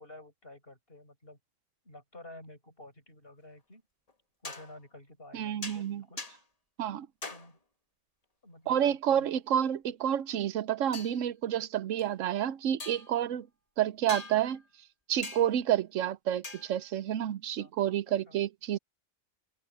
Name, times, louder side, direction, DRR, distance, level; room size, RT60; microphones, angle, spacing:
voice 1, 0.0-1.4 1.8-3.8 4.4-6.2 7.3-7.6 8.4-9.3 17.6-17.7 18.3-18.4, left 1 dB, 50° left, 8.4 m, -51 dB
sound 1, 4.1-4.2 4.4-4.8 5.6-5.9 6.2-6.4 7.2-7.5 10.9-11.2 12.0-12.1 12.8-13.2 14.1-14.7 15.2-15.7 16.4-16.9, left 3 dB, 30° left, 1.5 m, -42 dB
voice 2, 5.3-6.0 6.8-7.1 8.7-13.5 13.8-14.6 15.1-18.8, right 10 dB, 85° right, 1.1 m, -29 dB
omnidirectional pair, 1.3 m